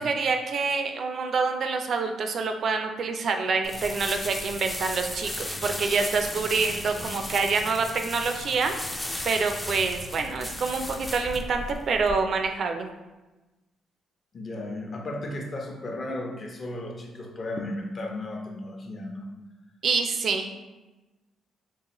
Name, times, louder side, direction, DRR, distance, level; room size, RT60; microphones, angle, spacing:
voice 1, 0.0-8.7 9.2-12.9 19.8-20.5, right 4 dB, 55° right, 5 dB, 0.4 m, -26 dB
sound 1, 3.6-12.1, left 1 dB, 10° left, 0.4 m, -35 dB
voice 2, 6.8-7.2 10.4-10.5 14.3-19.3, left 1 dB, 40° left, 0 dB, 0.7 m, -35 dB
3.8 x 2.5 x 2.9 m, 1.1 s
cardioid pair, 90°, 0 cm